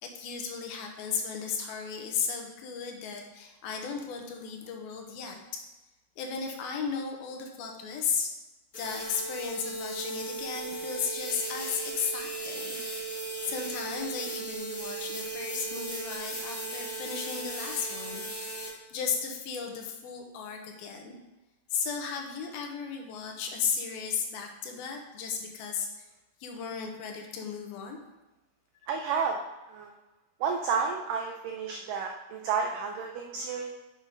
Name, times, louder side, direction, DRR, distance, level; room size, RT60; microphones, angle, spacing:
voice 1, 0.0-5.6 6.2-8.3 8.8-12.8 13.1-21.2 21.7-26.0 26.4-28.0, left 6 dB, 75° left, 2 dB, 2.7 m, -35 dB
sound 1, 8.7-18.7, right 2 dB, 30° left, 2.7 m, -37 dB
voice 2, 28.9-29.4 29.7-29.9 30.4-33.7, right 6 dB, 85° right, 2 dB, 1.9 m, -31 dB
7.4 x 6.2 x 5.2 m, 1.1 s
omnidirectional pair, 4.6 m